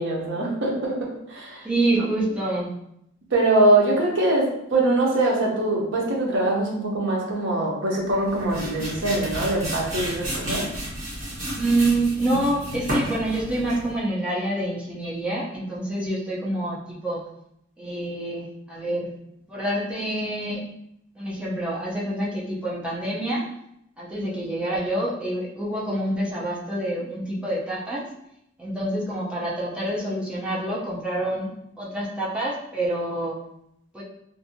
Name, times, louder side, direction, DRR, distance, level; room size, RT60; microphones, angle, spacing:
voice 1, 0.0-1.7 3.3-10.7, right 2 dB, 65° right, -1 dB, 0.7 m, -23 dB
voice 2, 1.6-2.7 11.5-17.2 17.8-19.1 19.5-20.7 21.2-23.5 24.0-28.0 28.6-31.5 31.8-33.4 33.9-34.0, right 1 dB, 5° right, -6 dB, 0.6 m, -27 dB
sound 1, 8.1-14.0, equal, 40° right, 1.1 m, -32 dB
2.6 x 2.5 x 2.6 m, 0.76 s
head